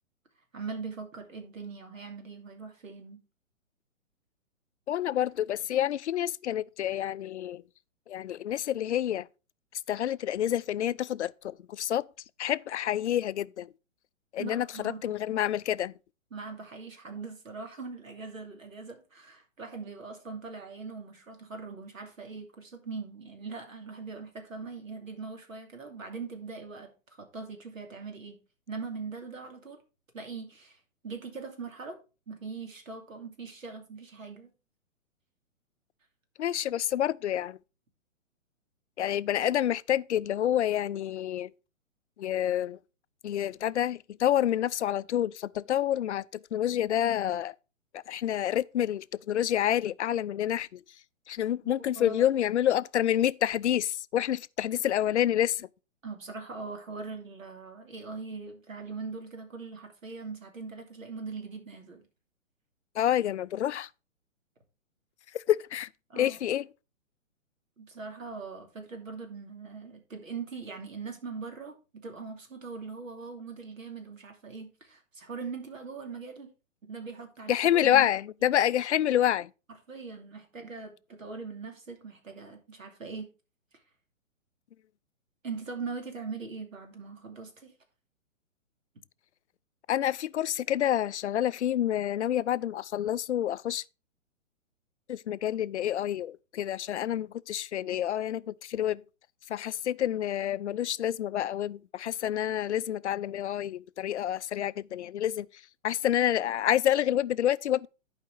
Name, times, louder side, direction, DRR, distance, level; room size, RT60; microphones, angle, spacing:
voice 1, 0.5-3.2 14.4-15.2 16.3-26.9 27.2-28.4 28.7-29.8 30.1-32.0 32.3-34.5 51.6-52.3 56.0-62.1 66.1-66.4 67.8-76.5 76.8-78.1 79.9-83.3 83.7-83.8 85.4-87.7, right 4 dB, 75° right, 2.7 m, -41 dB
voice 2, 4.9-7.6 8.1-9.3 9.9-12.1 12.4-13.7 14.3-15.9 36.4-37.6 39.0-41.5 42.2-42.8 43.2-47.5 47.9-50.8 51.3-55.7 63.0-63.9 65.3-65.9 66.2-66.7 77.5-79.5 89.9-93.8 95.1-99.0 99.5-105.5 105.8-107.9, left 11 dB, 60° left, 0.5 m, -28 dB
11.5 x 5.0 x 4.6 m
figure-of-eight pair, 130°, 40 cm